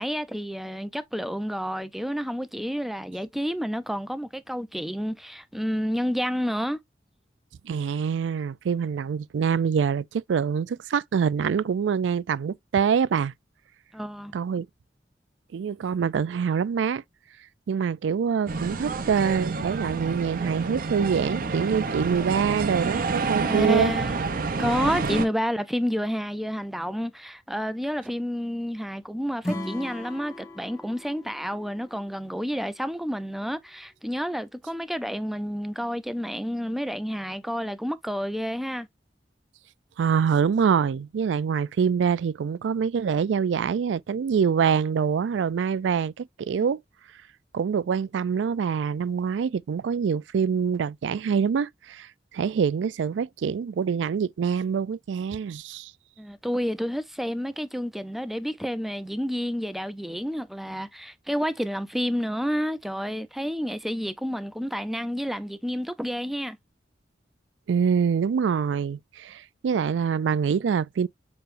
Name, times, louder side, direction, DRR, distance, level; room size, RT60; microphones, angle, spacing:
voice 1, 0.0-6.8 13.9-14.3 23.4-24.2 24.6-38.9 56.2-66.6, equal, ahead, 0.4 m, -30 dB
voice 2, 7.6-13.3 14.3-14.7 15.5-17.0 17.7-23.9 40.0-46.8 47.5-52.1 52.3-55.9 67.7-71.1, right 6 dB, 85° right, 0.3 m, -25 dB
sound 1, 18.5-25.3, right 4 dB, 50° right, 0.6 m, -28 dB
Acoustic guitar / Strum, 29.4-32.7, left 1 dB, 20° left, 1.2 m, -37 dB
6.8 x 3.1 x 2.5 m
head